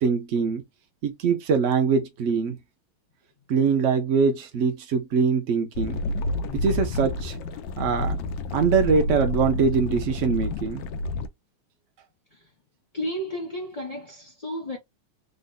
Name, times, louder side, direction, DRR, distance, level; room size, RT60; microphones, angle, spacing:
voice 1, 0.0-0.6 1.0-2.6 3.5-6.0 6.5-7.4 7.8-8.2 8.5-10.8, right 5 dB, 90° right, 0.6 m, -23 dB
sound 1, 5.7-11.3, left 2 dB, 75° left, 1.2 m, -29 dB
voice 2, 12.9-14.8, equal, 40° left, 0.5 m, -32 dB
3.9 x 2.2 x 3.8 m
omnidirectional pair, 2.3 m